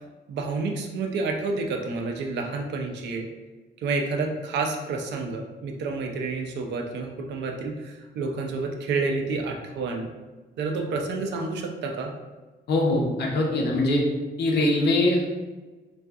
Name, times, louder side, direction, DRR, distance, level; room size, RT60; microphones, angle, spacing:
voice 1, 0.3-3.3 3.8-10.1 10.6-12.1, right 3 dB, 75° right, 2 dB, 0.4 m, -29 dB
voice 2, 12.7-14.0 14.4-15.3, left 2 dB, 65° left, -1 dB, 0.6 m, -22 dB
2.5 x 2.3 x 2.3 m, 1.3 s
cardioid pair, 145°, 18 cm